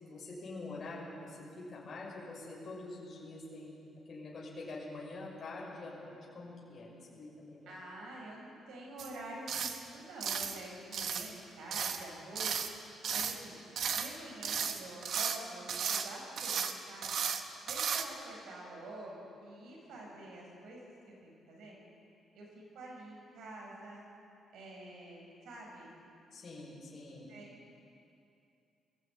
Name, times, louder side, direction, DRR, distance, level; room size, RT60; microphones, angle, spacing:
voice 1, 0.0-3.8 4.1-7.7 26.3-27.3, left 2 dB, 35° left, -4 dB, 5.9 m, -45 dB
voice 2, 7.6-13.6 13.9-17.2 17.6-21.8 22.3-24.0 24.5-25.9 27.3-27.4, right 1 dB, 70° right, -2 dB, 6.8 m, -48 dB
sound 1, 9.0-9.2 9.5-9.8 10.2-10.6 10.9-11.3 11.7-12.0 12.4-12.7 13.0-13.4 13.8-14.2 14.4-15.4 15.7-16.1 16.4-16.7 17.0-17.4 17.7-18.0, right 7 dB, 55° right, 1.2 m, -34 dB
21.5 x 15.5 x 9.0 m, 2.6 s
cardioid pair, 175°, 0 cm